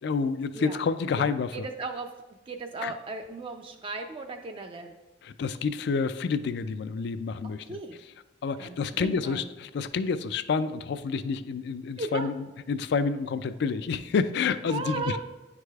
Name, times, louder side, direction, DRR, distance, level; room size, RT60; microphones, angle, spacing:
voice 1, 0.0-1.7 2.8-2.9 5.2-7.8 8.4-15.2, left 5 dB, 65° left, 13 dB, 0.3 m, -29 dB
voice 2, 1.5-2.1 2.5-5.0 7.4-8.0 8.6-9.5 12.0-12.3 14.7-15.2, right 3 dB, 30° right, 4 dB, 0.3 m, -36 dB
9.7 x 4.8 x 2.3 m, 1.1 s
head